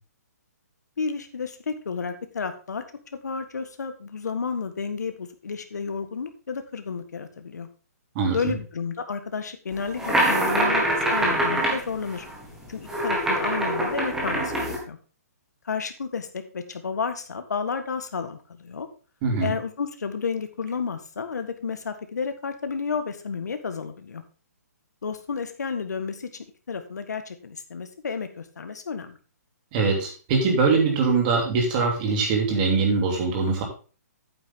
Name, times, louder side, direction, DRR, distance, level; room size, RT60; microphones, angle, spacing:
voice 1, 1.0-2.8 3.2-7.7 8.3-10.9 11.1-12.3 12.7-15.0 15.6-18.9 19.4-24.2 25.0-29.2, left 5 dB, 85° left, 8 dB, 1.6 m, -31 dB
sound 1, 9.8-14.8, right 1 dB, 5° right, 1.8 m, -24 dB
voice 2, 19.2-19.5 29.7-33.6, right 4 dB, 25° right, 1 dB, 2.8 m, -22 dB
8.9 x 8.7 x 3.7 m, 0.36 s
hypercardioid pair, 165°, 9 cm